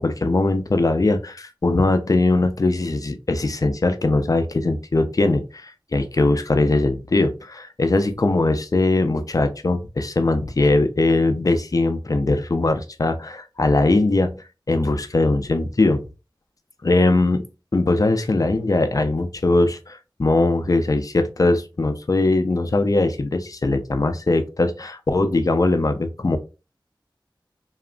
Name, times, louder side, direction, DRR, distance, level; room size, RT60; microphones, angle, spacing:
voice 1, 0.0-14.4 14.7-16.0 16.8-17.4 17.7-26.4, left 2 dB, 45° left, 8 dB, 0.4 m, -20 dB
2.8 x 2.4 x 2.2 m, 0.29 s
wide cardioid pair, 60°, 9 cm